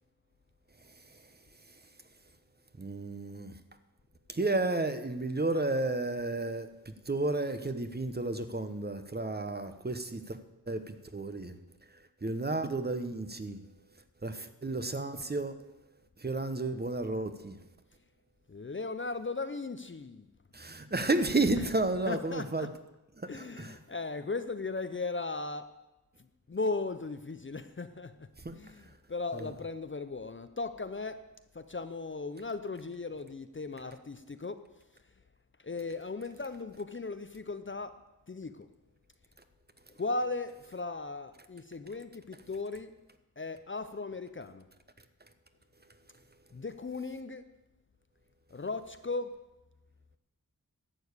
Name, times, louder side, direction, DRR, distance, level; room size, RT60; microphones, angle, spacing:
voice 1, 2.8-3.6 4.3-6.7 7.1-10.4 10.7-11.6 12.2-13.6 14.2-15.5 16.2-17.6 20.5-22.7 23.2-23.8 28.4-28.5 29.3-29.5, right 2 dB, 25° right, 0.9 m, -32 dB
voice 2, 18.5-20.3 21.5-22.7 23.3-25.8 26.2-28.3 28.5-31.3 31.5-34.7 35.6-38.0 38.3-38.7 40.0-42.9 43.4-44.7 46.5-47.5 48.5-49.4, left 3 dB, 35° left, 0.6 m, -37 dB
11.5 x 7.0 x 8.2 m
wide cardioid pair, 85°, 36 cm